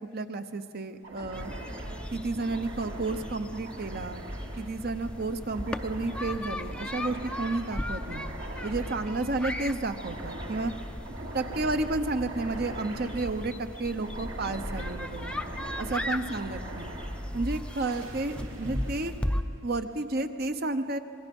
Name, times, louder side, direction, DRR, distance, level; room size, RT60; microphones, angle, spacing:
voice 1, 0.1-1.5 2.1-4.2 4.6-8.2 8.6-10.7 11.3-15.3 15.8-16.9 17.3-19.1 19.6-21.0, right 2 dB, 50° right, 9 dB, 0.9 m, -31 dB
sound 1, 1.0-19.9, right 1 dB, 70° right, 2.4 m, -41 dB
sound 2, 1.3-19.4, left 1 dB, 5° left, 0.5 m, -37 dB
26.0 x 21.5 x 5.4 m, 2.7 s
head